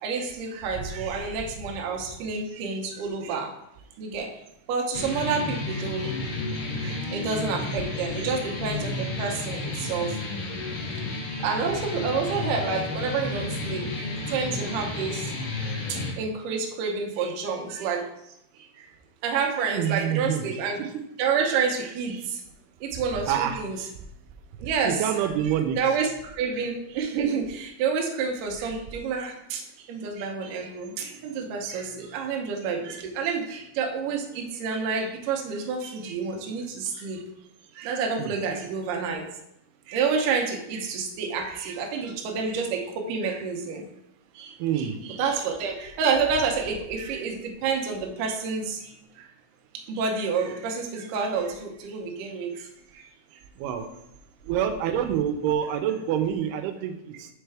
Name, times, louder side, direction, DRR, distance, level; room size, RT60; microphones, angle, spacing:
voice 1, 0.0-3.5 4.0-4.3 4.7-6.1 6.8-10.2 11.3-15.3 15.7-18.0 18.8-18.9 19.2-20.8 21.2-22.4 22.8-23.8 24.6-29.6 29.9-37.2 37.8-39.2 39.9-43.8 44.3-49.3 49.9-52.7 52.9-53.0, right 5 dB, 70° right, 1 dB, 2.1 m, -29 dB
sound 1, 4.9-16.1, left 2 dB, 80° left, 1.2 m, -32 dB
voice 2, 19.7-20.4 20.9-21.0 23.3-23.6 24.8-25.8 31.1-31.2 38.2-38.3 44.6-45.0 53.6-53.9 54.5-57.3, right 9 dB, 90° right, 7 dB, 2.6 m, -26 dB
6.5 x 4.5 x 3.3 m, 0.81 s
omnidirectional pair, 4.5 m